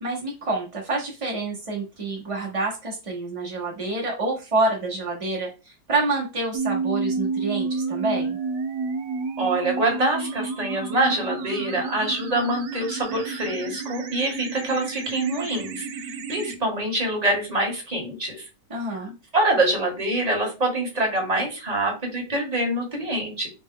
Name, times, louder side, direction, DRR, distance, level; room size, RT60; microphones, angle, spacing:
voice 1, 0.0-8.4 18.7-19.1, right 2 dB, 45° right, -3 dB, 0.4 m, -27 dB
sound 1, 6.5-16.6, right 4 dB, 85° right, 1.3 m, -30 dB
voice 2, 9.4-15.9 16.3-18.5 19.3-23.5, right 1 dB, 30° right, 0 dB, 0.8 m, -25 dB
4.3 x 2.1 x 3.6 m, 0.30 s
omnidirectional pair, 2.0 m